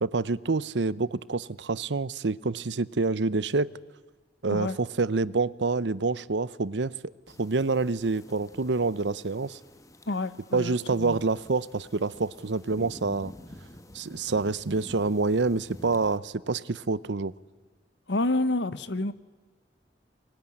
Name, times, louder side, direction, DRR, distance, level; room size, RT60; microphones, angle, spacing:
voice 1, 0.0-3.7 4.4-6.9 7.4-9.6 10.5-13.3 13.9-17.3, right 3 dB, 85° right, 0.8 m, -27 dB
sound 1, 7.3-16.2, left 1 dB, 20° left, 1.8 m, -49 dB
voice 2, 10.1-11.2 18.1-19.1, left 2 dB, 85° left, 1.1 m, -29 dB
25.0 x 21.5 x 10.0 m
head